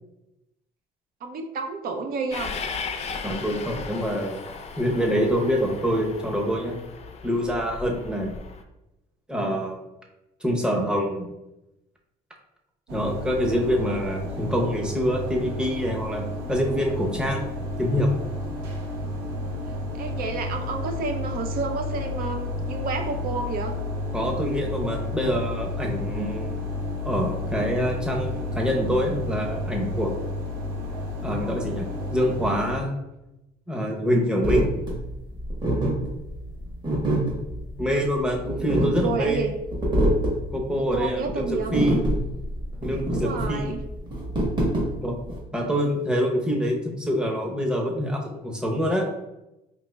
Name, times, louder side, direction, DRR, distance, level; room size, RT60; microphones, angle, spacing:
voice 1, 1.2-2.6 20.0-23.7 38.6-38.7 39.0-39.5 40.8-41.8 43.1-43.8, right 4 dB, 60° right, 4 dB, 0.5 m, -30 dB
Train, 2.3-8.6, left 5 dB, 40° left, 0.4 m, -36 dB
voice 2, 3.2-4.4 4.8-6.8 7.2-8.3 9.3-9.8 10.4-11.3 12.9-17.5 17.8-18.1 24.1-26.6 27.0-30.1 31.2-32.9 33.7-34.7 37.8-39.5 40.5-42.0 42.8-43.7 45.0-45.2 45.5-49.1, equal, 5° right, 0 dB, 0.7 m, -25 dB
sound 1, 12.9-32.8, left 2 dB, 80° right, 1.0 m, -31 dB
sound 2, 34.4-45.4, right 1 dB, 25° right, 1.3 m, -25 dB
5.1 x 2.9 x 2.2 m, 0.94 s
cardioid pair, 110°, 17 cm